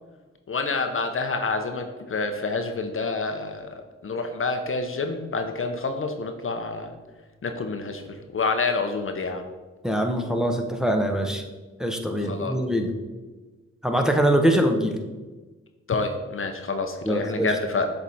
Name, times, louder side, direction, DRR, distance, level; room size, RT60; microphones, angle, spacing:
voice 1, 0.5-6.9 7.4-9.5 12.2-12.6 15.9-17.9, left 3 dB, 45° left, 6 dB, 0.7 m, -28 dB
voice 2, 9.8-11.4 11.8-12.9 13.8-15.0 17.0-17.5, right 1 dB, ahead, 4 dB, 0.9 m, -23 dB
7.2 x 3.5 x 4.1 m, 1.3 s
supercardioid pair, 45°, 30 cm